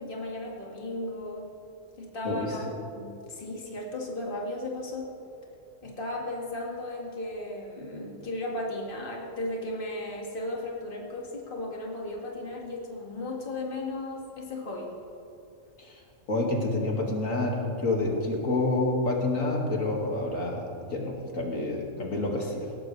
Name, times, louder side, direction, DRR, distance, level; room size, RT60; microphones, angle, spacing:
voice 1, 0.0-1.5 2.0-5.1 5.8-14.9, left 1 dB, 40° left, -2 dB, 2.3 m, -35 dB
voice 2, 2.2-2.6 15.8-15.9 16.3-22.7, left 2 dB, 80° left, -1 dB, 2.6 m, -28 dB
18.5 x 17.5 x 3.3 m, 2.8 s
omnidirectional pair, 1.4 m